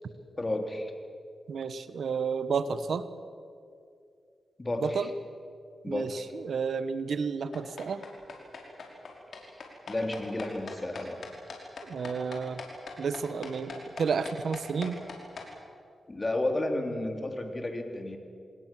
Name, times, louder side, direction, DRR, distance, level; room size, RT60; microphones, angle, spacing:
voice 1, 0.4-0.9 4.6-5.1 5.8-6.3 9.9-11.2 16.1-18.2, left 1 dB, 30° left, 4 dB, 3.7 m, -32 dB
voice 2, 1.5-3.0 4.8-5.1 5.9-8.0 11.9-12.6 13.0-15.0, right 5 dB, 75° right, 13 dB, 1.2 m, -31 dB
sound 1, 7.5-15.5, left 4 dB, 70° left, 5.2 m, -41 dB
27.5 x 19.5 x 7.6 m, 2.4 s
cardioid pair, 55°, 0 cm